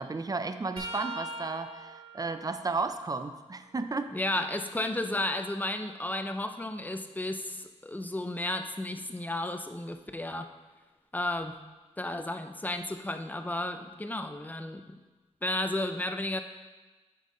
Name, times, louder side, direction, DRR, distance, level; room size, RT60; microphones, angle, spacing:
voice 1, 0.0-4.1, right 3 dB, 30° right, 10 dB, 0.5 m, -33 dB
sound 1, 0.8-4.5 5.0-7.0 9.9-10.1 11.3-11.5 12.8-12.9, right 2 dB, 50° right, 1.4 m, -45 dB
voice 2, 4.1-10.5 11.1-11.6 12.0-15.0 15.4-16.4, left 1 dB, 15° left, 7 dB, 0.6 m, -33 dB
8.9 x 5.4 x 3.8 m, 1.2 s
cardioid pair, 70°, 12 cm